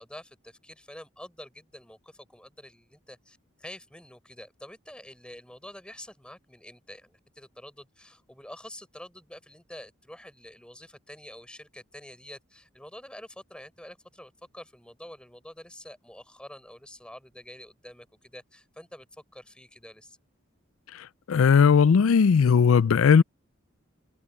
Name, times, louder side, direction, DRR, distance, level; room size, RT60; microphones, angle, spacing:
voice 1, 0.0-20.2, left 1 dB, 5° left, 5.5 m, -47 dB
voice 2, 21.3-23.2, left 6 dB, 85° left, 0.4 m, -18 dB
head